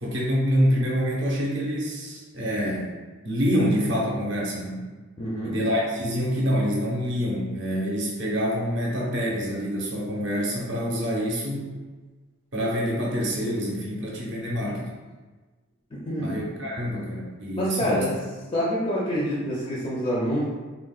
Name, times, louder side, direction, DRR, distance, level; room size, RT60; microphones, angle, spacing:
voice 1, 0.0-2.9 3.2-4.8 5.4-11.7 12.5-14.9 16.2-18.2, equal, 60° right, -3 dB, 0.7 m, -26 dB
voice 2, 5.2-5.5 15.9-16.3 17.6-18.2 18.5-20.4, equal, 25° left, -7 dB, 0.4 m, -26 dB
3.6 x 2.0 x 2.3 m, 1.3 s
head